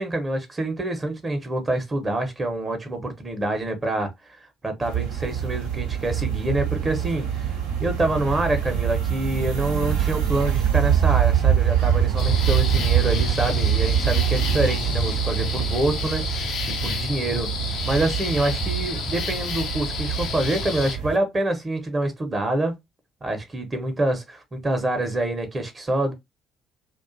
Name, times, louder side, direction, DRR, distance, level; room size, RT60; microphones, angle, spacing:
voice 1, 0.0-4.4 4.6-7.5 7.8-22.7 23.2-26.1, right 1 dB, 30° right, 0.7 m, -26 dB
sound 1, 4.8-21.2, right 9 dB, 75° right, 0.6 m, -24 dB
sound 2, 12.2-21.0, left 6 dB, 55° left, 0.5 m, -31 dB
2.4 x 2.2 x 2.4 m
figure-of-eight pair, 50°, 0 cm